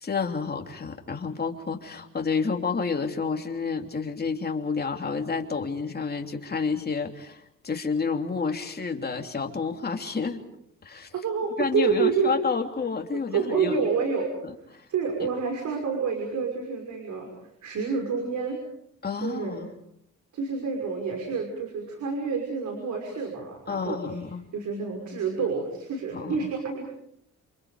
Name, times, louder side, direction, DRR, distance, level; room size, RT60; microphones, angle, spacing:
voice 1, 0.0-10.4 10.8-11.1 11.6-13.7 19.0-19.7 23.7-24.4 26.1-26.5, left 5 dB, 30° left, 4 dB, 3.2 m, -29 dB
voice 2, 11.1-12.3 13.3-14.3 14.7-17.3 17.6-18.6 19.2-19.6 20.3-24.2 24.5-26.9, right 5 dB, 70° right, 3 dB, 5.8 m, -28 dB
28.0 x 27.5 x 5.1 m, 0.73 s
cardioid pair, 90°, 30 cm